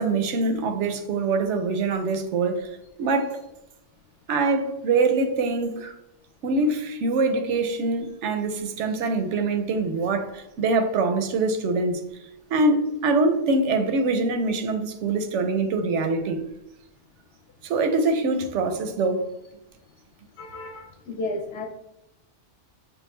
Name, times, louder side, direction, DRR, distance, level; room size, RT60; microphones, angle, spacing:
voice 1, 0.0-2.7 3.0-3.4 4.3-6.0 6.4-12.0 12.5-16.4 17.6-19.3, right 3 dB, 80° right, 0.9 m, -24 dB
voice 2, 20.4-21.6, left 2 dB, 65° left, 0.9 m, -33 dB
6.2 x 2.4 x 3.1 m
omnidirectional pair, 1.2 m